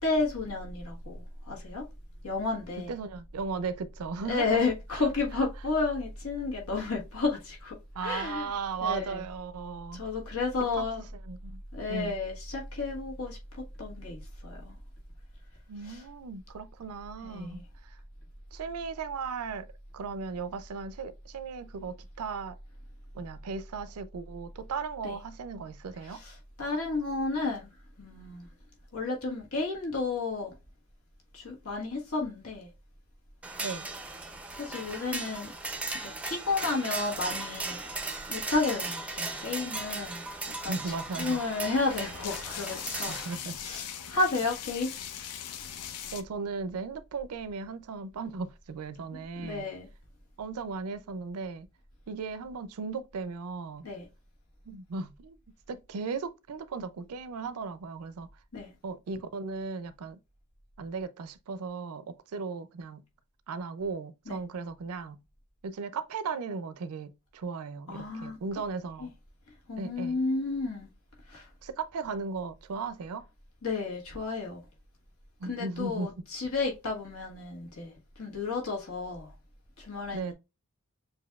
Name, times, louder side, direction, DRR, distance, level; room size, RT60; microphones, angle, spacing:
voice 1, 0.0-1.8 2.2-2.9 4.2-8.5 8.8-9.2 9.9-11.1 11.7-13.4 13.8-14.7 15.8-16.0 17.2-17.6 25.0-25.2 26.0-27.7 28.0-28.5 28.9-30.5 31.3-32.7 34.6-35.5 36.0-37.8 38.3-43.2 43.6-44.9 49.4-49.9 53.8-54.1 58.5-58.7 64.2-64.4 67.9-68.4 69.0-69.1 69.7-70.9 71.3-71.5 73.6-74.6 75.4-79.3 79.8-80.3, left 3 dB, 70° left, 1.4 m, -32 dB
voice 2, 2.9-5.1 8.0-10.0 10.7-10.9 11.3-11.6 11.9-12.2 15.7-18.0 18.5-19.7 19.9-22.6 23.1-26.2 33.6-33.9 40.7-41.4 43.1-43.6 46.1-49.7 50.4-51.7 52.1-53.9 54.7-55.4 55.7-58.3 58.8-60.2 60.8-63.0 63.5-65.2 65.6-69.1 69.8-70.2 71.6-73.2 75.4-76.1 80.1-80.3, right 4 dB, 75° right, 0.4 m, -36 dB
sound 1, 33.4-43.4, right 2 dB, 5° right, 0.4 m, -37 dB
sound 2, 37.7-39.0 39.6-39.7 39.9-46.2, left 9 dB, 90° left, 0.5 m, -41 dB
7.1 x 2.6 x 2.3 m
head